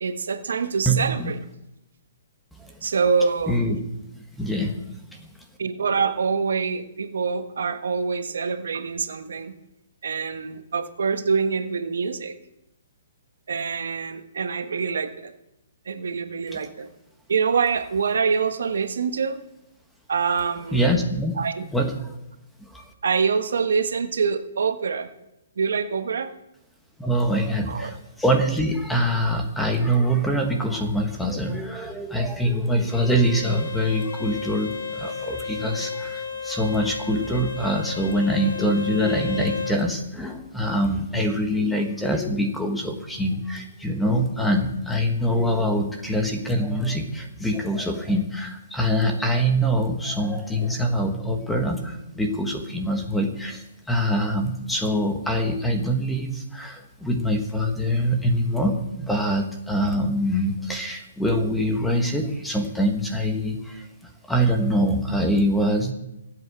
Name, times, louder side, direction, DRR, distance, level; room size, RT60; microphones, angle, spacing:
voice 1, 0.0-1.4 2.8-3.6 5.6-9.5 10.0-12.3 13.5-15.3 15.9-16.9 17.3-19.4 20.1-20.9 21.4-21.6 23.0-25.1 25.6-26.3 27.7-27.9, right 5 dB, 80° right, 8 dB, 1.4 m, -25 dB
voice 2, 0.9-1.3 2.6-2.7 3.5-3.8 4.4-5.3 16.5-16.7 20.7-21.3 21.7-22.1 22.6-22.8 27.0-63.9 64.3-65.9, equal, 5° left, 4 dB, 1.4 m, -24 dB
Bowed string instrument, 32.8-39.8, left 5 dB, 70° left, 4.6 m, -33 dB
23.5 x 8.3 x 4.8 m, 0.90 s
hypercardioid pair, 160°, 0 cm